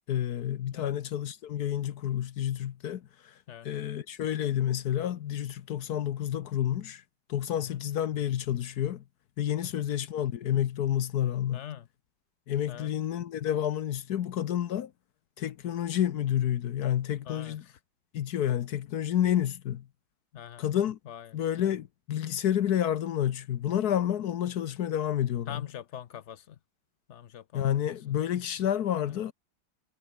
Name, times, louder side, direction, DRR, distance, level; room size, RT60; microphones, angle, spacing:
voice 1, 0.1-3.3 3.6-7.0 7.3-9.0 9.4-11.6 12.5-14.9 15.4-17.6 18.1-19.9 20.6-21.0 21.3-25.7 27.5-29.3, left 10 dB, 60° left, 1.2 m, -29 dB
voice 2, 11.5-11.9 12.7-12.9 17.3-17.7 20.3-20.7 21.1-21.4 25.5-26.6 27.1-27.6, left 10 dB, 80° left, 0.6 m, -43 dB
omnidirectional pair, 2.1 m